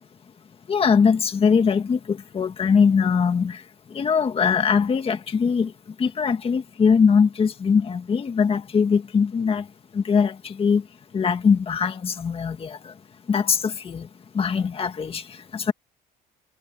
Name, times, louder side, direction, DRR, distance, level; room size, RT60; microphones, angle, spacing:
voice 1, 0.7-3.6 3.9-5.7 6.0-9.7 9.9-10.8 11.1-12.9 13.3-14.1 14.3-15.7, left 6 dB, 35° left, 1.8 m, -21 dB
cardioid pair, 110°, 17 cm